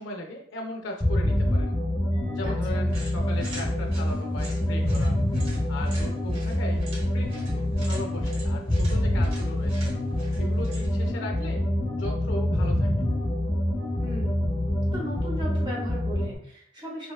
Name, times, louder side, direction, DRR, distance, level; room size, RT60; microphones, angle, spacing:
voice 1, 0.0-1.7 2.3-5.2 5.7-9.9 10.4-11.6 11.9-12.9, left 1 dB, 70° left, 2 dB, 0.4 m, -37 dB
sound 1, 1.0-16.4, left 1 dB, 15° left, 0.6 m, -26 dB
Mallet percussion, 2.1-9.6, left 1 dB, 65° right, 0.5 m, -51 dB
sound 2, 2.9-11.1, right 1 dB, 85° right, 0.9 m, -43 dB
voice 2, 14.0-14.6 14.9-17.1, equal, 20° right, -3 dB, 0.6 m, -37 dB
2.6 x 2.2 x 2.2 m, 0.66 s
head